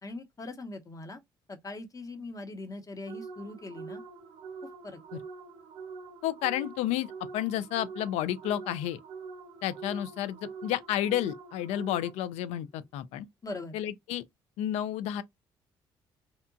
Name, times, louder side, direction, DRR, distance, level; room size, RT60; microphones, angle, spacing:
voice 1, 0.0-1.2 1.5-4.0 4.8-5.0 13.4-13.8, left 2 dB, 30° left, 0.8 m, -41 dB
sound 1, 3.1-12.5, right 5 dB, 65° right, 0.6 m, -45 dB
voice 2, 6.2-9.0 9.6-13.3 13.7-14.2 14.6-15.2, left 12 dB, 70° left, 0.4 m, -31 dB
2.8 x 2.1 x 2.5 m
hypercardioid pair, 55°, 12 cm